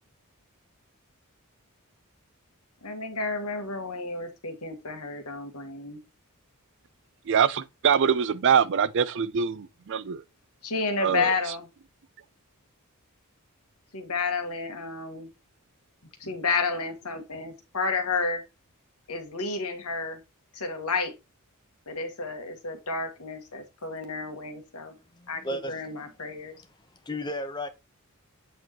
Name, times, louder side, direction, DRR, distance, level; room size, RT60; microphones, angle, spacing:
voice 1, 2.8-6.0 10.6-11.7 13.9-15.3 16.2-18.4 19.1-20.2 20.5-21.1 21.9-24.9 25.3-26.5, left 4 dB, 90° left, 1.6 m, -31 dB
voice 2, 7.3-10.2 11.0-11.3, right 7 dB, 55° right, 0.4 m, -24 dB
voice 3, 25.1-26.2 26.5-26.6 27.0-27.7, left 1 dB, 20° left, 0.8 m, -35 dB
8.1 x 4.5 x 3.0 m
head